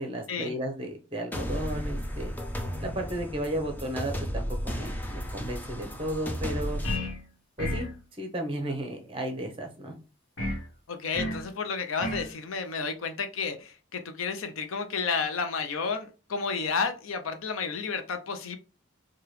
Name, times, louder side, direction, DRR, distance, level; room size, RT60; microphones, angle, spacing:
voice 1, 0.0-2.3 2.8-6.8 7.6-7.9 8.2-9.9, right 1 dB, 25° right, 3 dB, 0.8 m, -34 dB
sound 1, 1.3-7.0, equal, 10° left, 0.4 m, -34 dB
sound 2, 6.8-7.2 7.6-8.0 10.4-10.7 11.1-11.5 12.0-12.3, left 1 dB, 70° left, 1.2 m, -31 dB
voice 2, 10.9-18.6, left 5 dB, 85° left, 8 dB, 0.6 m, -31 dB
4.8 x 2.3 x 3.1 m, 0.34 s
head